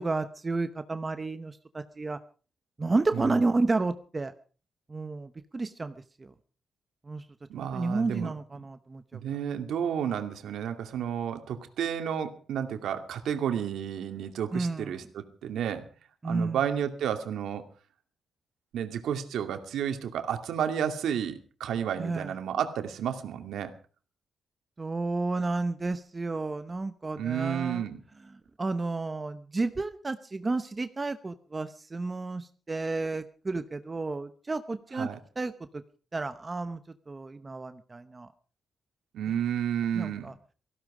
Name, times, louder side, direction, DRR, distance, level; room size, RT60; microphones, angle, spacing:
voice 1, 0.0-2.2 2.8-4.3 4.9-6.3 7.0-7.2 7.6-9.2 14.5-15.0 16.2-16.6 22.0-22.4 24.8-27.8 28.6-35.1 35.4-35.8 36.1-36.8 37.1-38.3 39.9-40.3, right 3 dB, 20° right, 11 dB, 0.8 m, -31 dB
voice 2, 3.1-3.4 7.5-8.3 9.1-15.9 16.2-17.6 18.7-23.7 27.2-28.0 34.9-35.2 39.1-40.3, right 9 dB, 80° right, 7 dB, 2.4 m, -31 dB
18.5 x 15.5 x 5.0 m, 0.39 s
cardioid pair, 145°, 0 cm